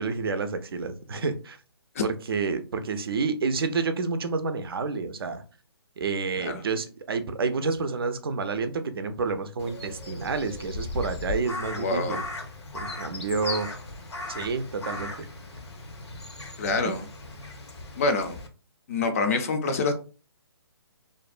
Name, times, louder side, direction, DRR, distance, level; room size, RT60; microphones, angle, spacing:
voice 1, 0.0-1.6 2.0-5.4 6.0-12.2 12.7-13.7 14.3-15.3 16.8-16.9, right 4 dB, 60° right, 0.4 m, -29 dB
Crow, 9.6-18.5, left 2 dB, 80° left, 0.7 m, -37 dB
voice 2, 11.8-12.2 16.6-17.0 18.0-18.4 18.9-19.9, left 3 dB, 35° left, 0.4 m, -26 dB
2.5 x 2.1 x 2.4 m
figure-of-eight pair, 140°, 14 cm